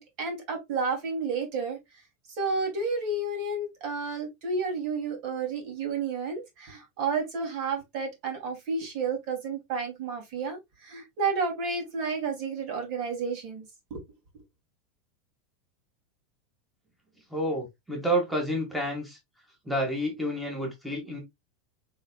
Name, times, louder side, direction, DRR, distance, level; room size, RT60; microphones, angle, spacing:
voice 1, 0.0-1.8 2.3-13.6 13.9-14.0, right 4 dB, 50° right, 2.6 m, -31 dB
voice 2, 17.3-19.2 19.6-21.2, equal, ahead, 1.7 m, -29 dB
6.4 x 3.6 x 2.3 m
supercardioid pair, 150°, 0 cm